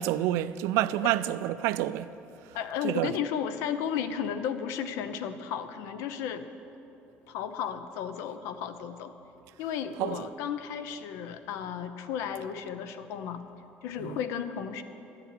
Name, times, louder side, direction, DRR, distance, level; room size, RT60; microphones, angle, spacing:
voice 1, 0.0-2.1 2.8-3.1 10.0-10.3 14.0-14.2, right 14 dB, 80° right, 0.3 m, -28 dB
voice 2, 2.5-6.5 7.3-9.1 9.6-13.4 13.8-14.8, left 8 dB, 75° left, 0.7 m, -34 dB
11.5 x 6.8 x 9.1 m
cardioid pair, 175°, 5 cm